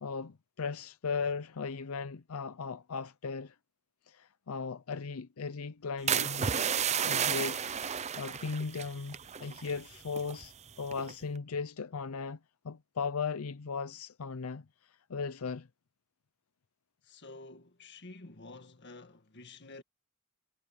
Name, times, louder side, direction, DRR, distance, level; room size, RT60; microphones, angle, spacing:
voice 1, 0.0-3.5 4.1-6.5 7.0-7.6 8.2-12.4 12.6-15.7, left 5 dB, 70° left, 0.6 m, -37 dB
sound 1, 6.1-9.8 10.1-10.5 10.9-11.2, right 7 dB, 30° right, 0.6 m, -32 dB
voice 2, 17.0-19.8, left 2 dB, 50° left, 1.8 m, -50 dB
head